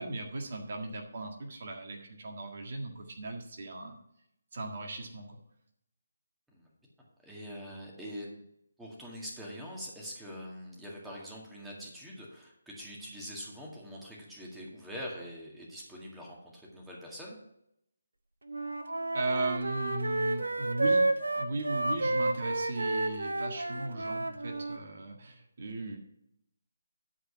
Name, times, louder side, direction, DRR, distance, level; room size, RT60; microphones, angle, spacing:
voice 1, 0.0-4.0 4.5-5.4 19.1-21.1 21.3-26.0, right 2 dB, 50° right, 2 dB, 1.7 m, -37 dB
voice 2, 7.2-8.4 8.8-17.4, equal, 5° right, -3 dB, 2.0 m, -44 dB
Wind instrument woodwind instrument, 18.5-24.8, right 2 dB, 80° right, 1.1 m, -31 dB
11.0 x 4.8 x 7.0 m, 0.77 s
figure-of-eight pair, 155°, 0 cm